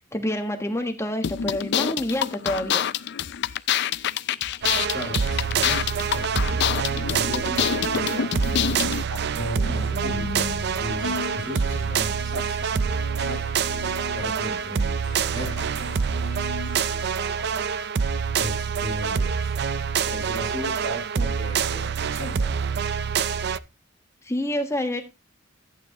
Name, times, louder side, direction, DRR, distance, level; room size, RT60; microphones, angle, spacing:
voice 1, 0.1-2.8 24.2-25.0, left 1 dB, 15° left, 5 dB, 1.4 m, -27 dB
sound 1, 1.2-9.0, left 9 dB, 60° left, 0.4 m, -26 dB
sound 2, 4.6-23.6, right 6 dB, 55° right, 0.5 m, -26 dB
voice 2, 4.9-6.8 7.1-8.3 9.1-10.5 10.8-13.4 14.1-15.0 15.3-16.0 18.4-19.5 20.0-22.5, equal, 75° right, -1 dB, 7.6 m, -36 dB
sound 3, 9.6-17.0, left 3 dB, 85° left, 2.1 m, -38 dB
13.5 x 9.1 x 2.9 m, 0.25 s
head